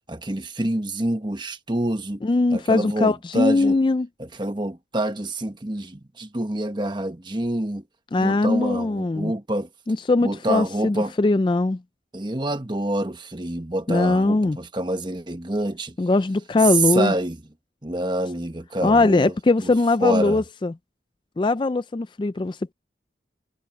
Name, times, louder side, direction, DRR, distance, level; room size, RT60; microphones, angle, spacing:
voice 1, 0.0-2.2 2.5-3.8 4.2-7.8 8.2-9.7 10.2-11.1 12.1-16.0 16.9-17.4 17.8-19.3 19.6-19.7 20.0-20.4, right 1 dB, 25° right, 1.2 m, -27 dB
voice 2, 2.2-4.1 8.1-9.3 9.9-11.8 13.9-14.6 16.0-17.1 18.8-20.7 21.4-22.7, left 2 dB, 25° left, 0.3 m, -21 dB
head